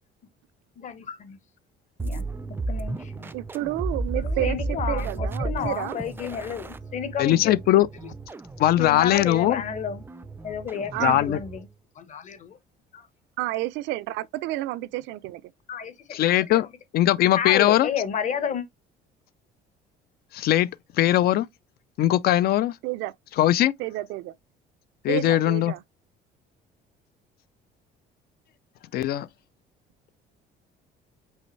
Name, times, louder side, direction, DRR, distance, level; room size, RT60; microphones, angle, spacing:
voice 1, 0.8-1.4 2.0-2.2 2.7-3.3 4.1-7.6 8.8-10.0 10.4-11.7 12.0-12.6 12.9-13.1 15.7-16.2 16.5-16.7 17.4-18.7, left 7 dB, 40° left, 1.0 m, -31 dB
sound 1, 2.0-11.7, right 2 dB, 10° right, 0.4 m, -33 dB
voice 2, 3.3-6.0 10.9-11.2 13.4-15.4 22.8-23.1 23.8-24.3 25.1-25.8, right 16 dB, 85° right, 0.5 m, -30 dB
voice 3, 7.2-7.9 8.6-9.6 11.0-11.4 16.1-16.7 16.9-17.9 20.3-20.7 21.0-21.5 22.0-22.8 23.4-23.7 25.0-25.7 28.9-29.3, left 13 dB, 60° left, 0.4 m, -20 dB
5.5 x 3.0 x 3.2 m
cardioid pair, 135°, 18 cm